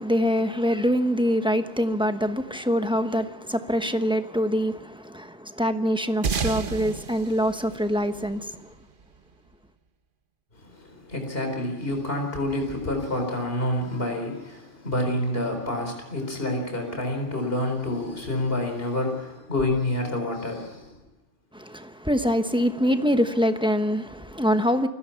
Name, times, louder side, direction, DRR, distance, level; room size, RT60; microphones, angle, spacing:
voice 1, 0.0-8.7 21.5-24.9, equal, 5° right, 1.0 m, -24 dB
sound 1, 6.2-9.0, right 6 dB, 50° right, 1.0 m, -31 dB
voice 2, 10.5-21.0, left 1 dB, 50° left, 4.4 m, -28 dB
28.5 x 17.0 x 5.8 m
omnidirectional pair, 1.2 m